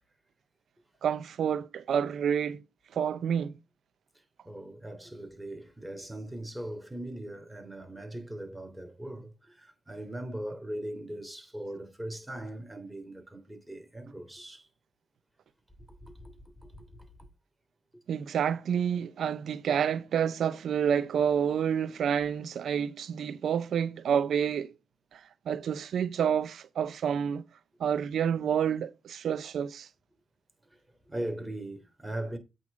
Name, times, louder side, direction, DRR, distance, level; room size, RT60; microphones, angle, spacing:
voice 1, 1.0-2.6 2.9-3.6 18.1-24.7 25.1-25.2 25.5-27.4 27.8-29.9, right 8 dB, 75° right, 0.6 m, -29 dB
voice 2, 4.4-14.7 16.0-16.3 16.7-16.8 31.1-32.4, right 1 dB, 5° right, 3.3 m, -39 dB
8.2 x 6.6 x 3.7 m
supercardioid pair, 55°, 0 cm